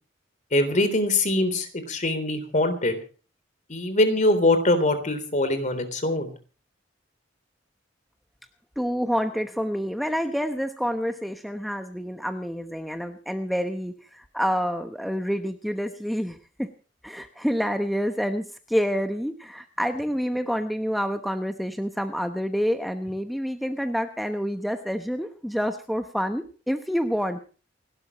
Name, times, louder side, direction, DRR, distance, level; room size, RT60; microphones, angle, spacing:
voice 1, 0.5-3.0 3.7-6.3, left 2 dB, 40° left, 10 dB, 3.5 m, -23 dB
voice 2, 8.8-16.7 17.0-27.4, equal, ahead, 7 dB, 1.0 m, -28 dB
28.5 x 12.5 x 3.1 m, 0.38 s
head